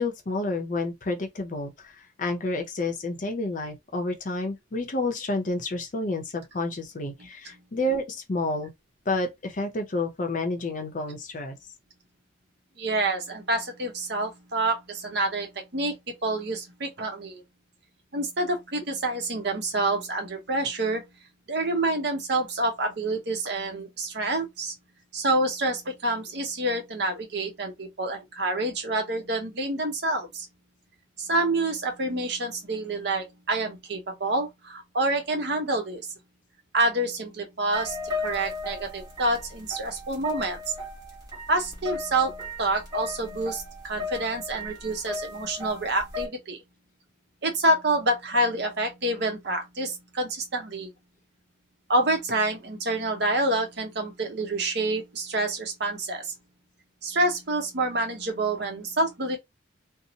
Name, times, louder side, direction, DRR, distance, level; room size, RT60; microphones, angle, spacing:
voice 1, 0.0-8.7 9.1-11.6, left 2 dB, 45° left, 0.6 m, -30 dB
voice 2, 12.8-17.4 18.1-21.0 21.5-24.7 25.1-30.5 31.2-36.1 36.7-40.6 41.5-46.6 47.4-50.9 51.9-56.3 57.0-59.4, right 2 dB, 60° right, 0.8 m, -27 dB
sound 1, 37.7-46.3, left 3 dB, 20° right, 1.1 m, -36 dB
2.7 x 2.0 x 2.7 m
head